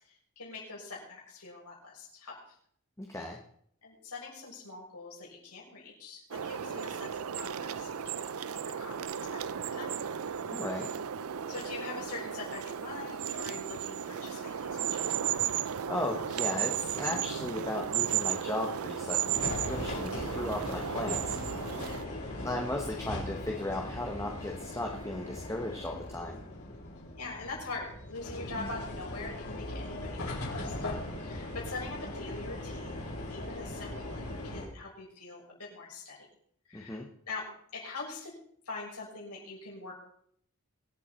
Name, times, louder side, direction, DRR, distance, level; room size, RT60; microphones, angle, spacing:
voice 1, 0.0-2.4 3.8-9.9 11.5-15.1 21.8-22.0 27.2-33.0 33.3-36.3 36.7-37.4 37.7-38.3 38.6-39.9, left 3 dB, 90° left, -4 dB, 6.8 m, -43 dB
voice 2, 3.0-3.4 10.5-10.9 15.9-21.4 22.4-26.4 36.7-37.1, left 1 dB, 15° left, 1 dB, 1.2 m, -36 dB
sound 1, 6.3-22.0, right 9 dB, 70° right, 0.5 m, -34 dB
sound 2, 19.3-34.7, left 1 dB, 75° left, 5.8 m, -39 dB
24.0 x 8.2 x 4.4 m, 0.66 s
head